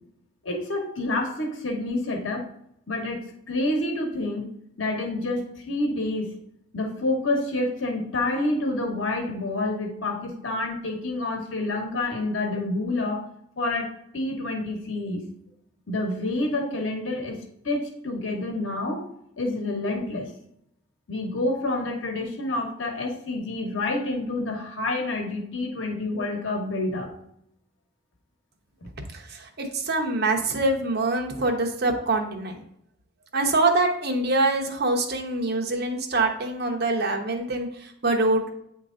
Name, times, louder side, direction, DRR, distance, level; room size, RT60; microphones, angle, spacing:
voice 1, 0.4-2.5 2.9-4.5 4.8-6.3 6.7-13.2 13.6-15.3 15.9-19.1 19.4-20.3 21.1-27.1, left 2 dB, 90° left, 2 dB, 1.0 m, -28 dB
voice 2, 29.1-32.6 33.3-38.5, right 2 dB, 55° right, 2 dB, 1.0 m, -25 dB
8.6 x 3.0 x 3.8 m, 0.75 s
head